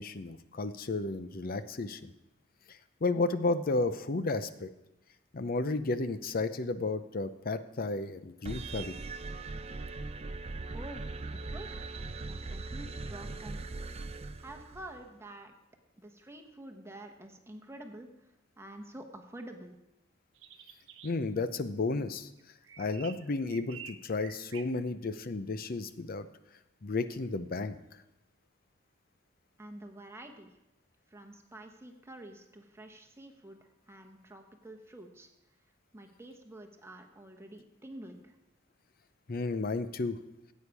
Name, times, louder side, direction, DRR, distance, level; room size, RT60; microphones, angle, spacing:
voice 1, 0.0-2.1 2.7-4.7 5.3-9.0 21.0-22.3 22.8-26.3 26.8-27.8 39.3-40.2, left 3 dB, 50° left, 12 dB, 0.6 m, -33 dB
sound 1, 8.5-15.0, right 3 dB, 30° right, 0.5 m, -40 dB
voice 2, 10.7-11.8 12.2-13.7 14.4-15.5 16.0-18.1 18.6-19.8 29.6-30.5 31.1-35.3 35.9-38.3, right 1 dB, 15° right, 3 dB, 1.0 m, -48 dB
sound 2, 20.3-21.1 22.4-24.7, right 7 dB, 70° right, 0.9 m, -49 dB
15.0 x 8.5 x 4.7 m, 0.92 s
head